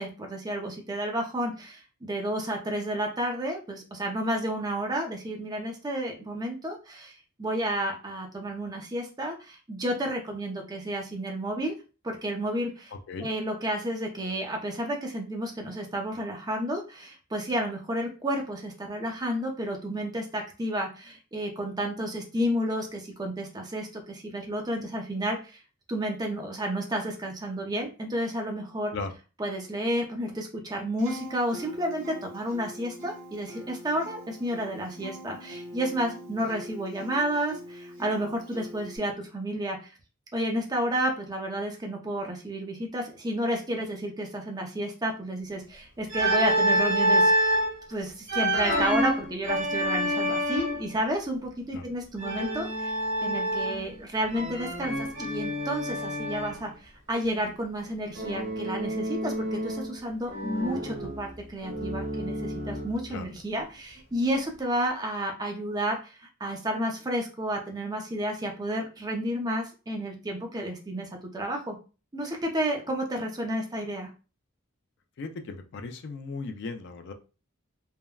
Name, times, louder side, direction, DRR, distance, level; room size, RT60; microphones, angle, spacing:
voice 1, 0.0-7.1 7.4-11.7 12.0-12.9 13.2-25.6 25.9-28.9 29.4-39.9 40.3-47.5 47.9-71.8 72.1-74.1, right 1 dB, 20° right, 2 dB, 0.5 m, -31 dB
Acoustic guitar, 31.0-39.0, equal, 80° right, 1.3 m, -43 dB
Organ, 46.1-47.7 48.3-50.9 52.2-53.9 54.3-56.6 58.2-60.0 60.3-63.0, equal, 60° right, 1.1 m, -28 dB
voice 2, 75.2-77.1, left 3 dB, 55° left, 7 dB, 0.4 m, -36 dB
3.4 x 2.1 x 2.2 m, 0.33 s
head